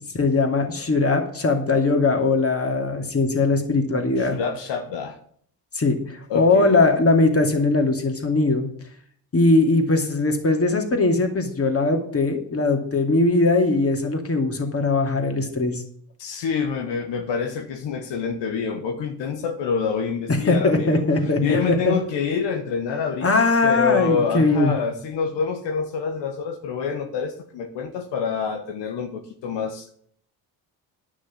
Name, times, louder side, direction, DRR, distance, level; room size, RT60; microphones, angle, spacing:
voice 1, 0.1-4.4 5.7-8.7 9.3-15.8 20.3-21.6 21.8-21.9 23.2-24.7, left 3 dB, 30° left, 3 dB, 2.5 m, -20 dB
voice 2, 4.2-5.2 6.3-6.9 16.2-21.0 21.4-29.9, left 6 dB, 75° left, 5 dB, 1.2 m, -27 dB
10.0 x 6.2 x 7.4 m, 0.62 s
supercardioid pair, 65°, 44 cm